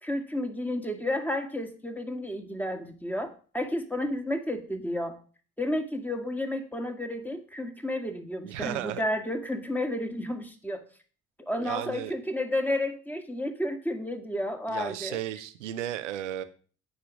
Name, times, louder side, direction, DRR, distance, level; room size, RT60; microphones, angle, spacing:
voice 1, 0.0-5.2 5.6-10.9 11.4-15.2, left 1 dB, 5° left, 6 dB, 1.8 m, -31 dB
voice 2, 8.4-9.0 11.6-12.1 14.7-16.4, right 12 dB, 85° right, 12 dB, 0.7 m, -34 dB
8.6 x 5.2 x 6.1 m, 0.41 s
hypercardioid pair, 45°, 35 cm